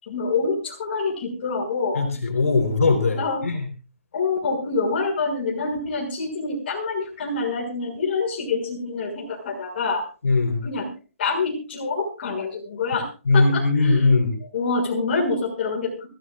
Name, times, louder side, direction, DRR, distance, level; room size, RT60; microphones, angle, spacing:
voice 1, 0.0-2.1 3.1-3.5 4.1-10.0 10.6-10.9 11.2-14.1 14.4-16.1, left 4 dB, 45° left, -1 dB, 6.4 m, -26 dB
voice 2, 2.0-3.6 10.2-10.6 13.3-14.3, left 3 dB, 90° left, 3 dB, 3.9 m, -20 dB
25.0 x 15.5 x 2.5 m, 0.34 s
hypercardioid pair, 155°, 8 cm